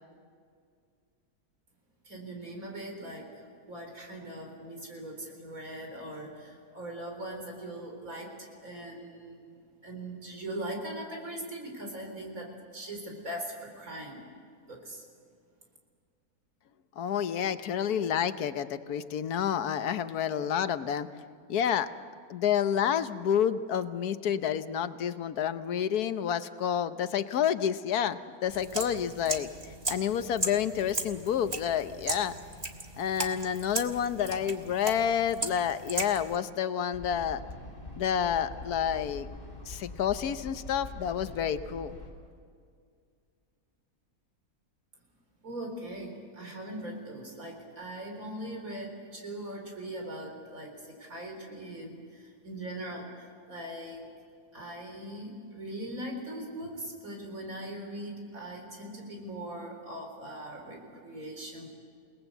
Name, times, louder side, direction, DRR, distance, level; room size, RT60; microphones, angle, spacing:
voice 1, 2.0-9.6 9.8-14.3 14.7-15.0 45.4-54.1 54.5-61.8, right 1 dB, 60° right, 1 dB, 4.6 m, -40 dB
voice 2, 17.0-21.1 21.5-21.9 22.3-29.5 29.9-32.3 33.0-37.4 38.0-39.3 39.7-42.0, left 9 dB, 75° left, 11 dB, 1.4 m, -29 dB
sound 1, 28.5-36.4, right 2 dB, 25° right, 1.5 m, -37 dB
sound 2, 36.9-42.1, left 1 dB, 35° left, 5.4 m, -44 dB
29.0 x 19.0 x 8.0 m, 2.2 s
omnidirectional pair, 1.7 m